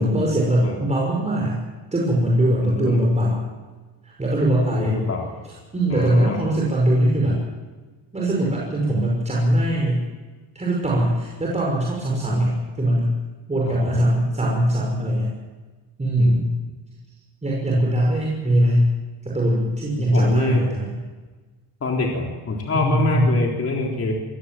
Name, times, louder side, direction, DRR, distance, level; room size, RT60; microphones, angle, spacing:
voice 1, 0.0-1.6 1.9-3.4 4.0-5.0 5.4-7.4 8.1-10.0 10.5-13.1 13.5-15.3 16.0-16.4 17.4-18.9 19.2-20.9 22.7-23.3, right 1 dB, 15° right, -3 dB, 5.6 m, -21 dB
voice 2, 2.6-3.0 4.8-5.4 5.9-6.4 12.3-12.4 13.6-14.0 16.2-16.4 20.0-20.6 21.8-24.1, left 3 dB, 30° left, 0 dB, 3.8 m, -25 dB
25.0 x 19.5 x 7.6 m, 1.3 s
cardioid pair, 160°, 45 cm